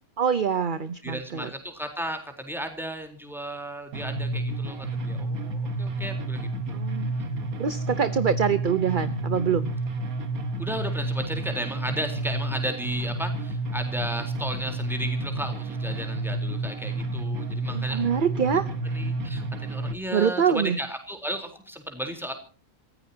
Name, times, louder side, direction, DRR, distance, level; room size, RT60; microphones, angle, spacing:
voice 1, 0.2-1.5 6.7-7.1 7.6-9.7 17.7-18.7 20.1-20.8, right 7 dB, 40° right, 13 dB, 0.9 m, -25 dB
voice 2, 1.0-6.5 10.6-18.3 18.8-22.3, equal, ahead, 5 dB, 3.9 m, -34 dB
sound 1, 3.9-19.9, right 2 dB, 80° right, 2.1 m, -30 dB
28.0 x 15.5 x 2.9 m, 0.39 s
omnidirectional pair, 1.5 m